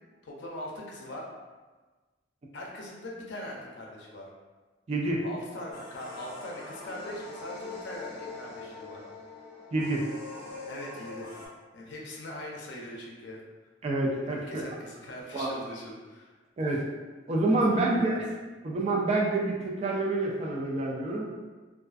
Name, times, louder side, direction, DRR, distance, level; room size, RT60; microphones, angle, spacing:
voice 1, 0.2-1.3 2.5-4.3 5.2-9.0 10.7-11.4 11.7-13.4 14.3-16.3 17.5-18.2, left 1 dB, 75° left, -2 dB, 0.5 m, -41 dB
voice 2, 4.9-5.2 9.7-10.0 13.8-14.6 15.3-15.5 16.6-16.8 17.3-18.2 18.6-21.3, right 2 dB, 35° right, -2 dB, 0.4 m, -27 dB
sound 1, 5.7-11.5, left 3 dB, 25° left, 0.7 m, -43 dB
2.3 x 2.3 x 2.3 m, 1.3 s
head